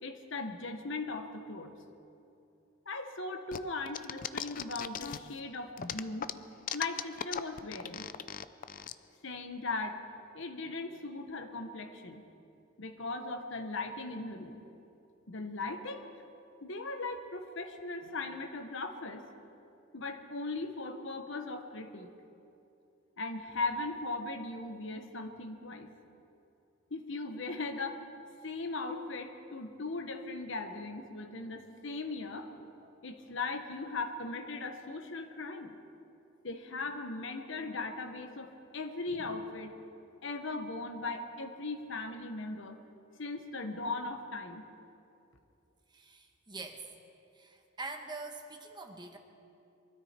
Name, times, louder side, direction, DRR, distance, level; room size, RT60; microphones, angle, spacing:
voice 1, 0.0-1.7 2.9-6.3 6.7-8.1 9.2-10.0 10.3-12.2 12.8-14.6 15.3-16.1 16.6-19.3 19.9-22.1 23.2-25.9 26.9-28.0 28.4-32.5 33.0-35.8 36.4-39.7 40.2-42.8 43.2-44.6, left 3 dB, 70° left, 6 dB, 1.2 m, -38 dB
sound 1, 3.5-5.4 5.8-8.9, left 8 dB, 45° left, 0.5 m, -38 dB
voice 2, 45.9-46.9 47.3-49.2, right 3 dB, 20° right, 4 dB, 1.2 m, -44 dB
23.5 x 13.5 x 4.4 m, 2.7 s
head